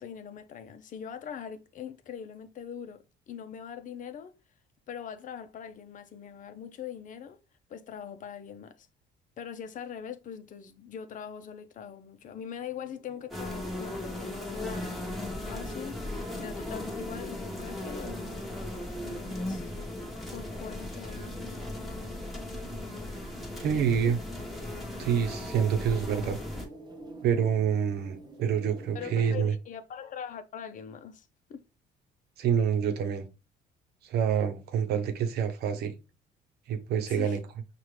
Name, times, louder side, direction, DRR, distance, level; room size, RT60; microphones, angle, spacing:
voice 1, 0.0-4.3 4.9-7.4 7.7-8.9 9.4-15.1 15.5-18.2 19.0-19.7 20.3-21.7 23.7-24.1 28.9-31.6 37.1-37.4, left 8 dB, 50° left, 0.7 m, -42 dB
sound 1, 12.3-29.5, right 2 dB, 25° right, 0.8 m, -50 dB
sound 2, 13.3-26.7, left 1 dB, ahead, 1.2 m, -37 dB
voice 2, 23.6-24.2 25.0-26.4 27.2-29.5 32.4-33.3 34.0-36.0 36.7-37.4, right 7 dB, 70° right, 0.9 m, -27 dB
5.8 x 2.5 x 3.2 m
cardioid pair, 110°, 17 cm